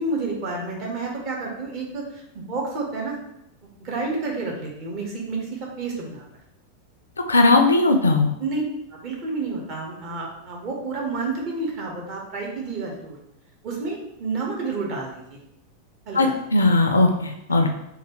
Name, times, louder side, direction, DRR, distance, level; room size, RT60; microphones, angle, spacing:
voice 1, 0.0-3.2 3.8-6.2 8.4-8.6 8.9-13.2 13.6-15.4 16.0-16.3 17.5-17.7, right 3 dB, 40° right, -2 dB, 1.0 m, -30 dB
voice 2, 7.3-8.3 16.1-17.7, left 2 dB, 75° left, 5 dB, 0.3 m, -18 dB
3.2 x 2.3 x 3.0 m, 0.81 s
figure-of-eight pair, 90°, 0 cm